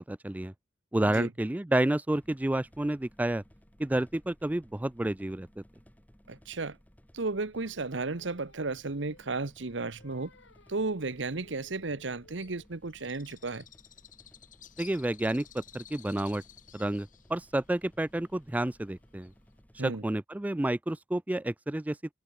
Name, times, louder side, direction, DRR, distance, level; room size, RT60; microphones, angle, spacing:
voice 1, 0.1-0.5 0.9-3.4 3.8-5.6 14.8-16.4 16.7-19.3 19.7-22.0, right 1 dB, 10° right, 0.3 m, -30 dB
sound 1, 2.2-20.0, equal, 10° left, 2.6 m, -60 dB
voice 2, 6.3-6.8 7.1-10.3 10.7-13.6 19.8-20.0, right 3 dB, 70° right, 1.1 m, -34 dB
Singing, 7.6-12.8, left 2 dB, 75° left, 5.4 m, -59 dB
Bird, 12.4-19.6, left 10 dB, 45° left, 2.4 m, -54 dB
open air
head